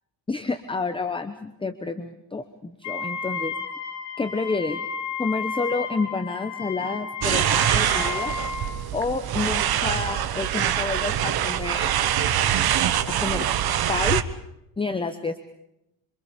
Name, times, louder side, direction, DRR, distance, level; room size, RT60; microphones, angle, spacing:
voice 1, 0.3-3.5 4.2-4.9 5.2-8.4 8.9-11.9 13.2-13.5 13.9-14.2 14.8-15.4, left 4 dB, 10° left, 8 dB, 0.9 m, -29 dB
Wind instrument woodwind instrument, 2.8-8.8, left 5 dB, 65° left, 7.0 m, -32 dB
sound 1, 7.2-14.2, right 11 dB, 50° right, 1.1 m, -24 dB
26.5 x 25.0 x 5.1 m, 0.82 s
cardioid pair, 155°, 46 cm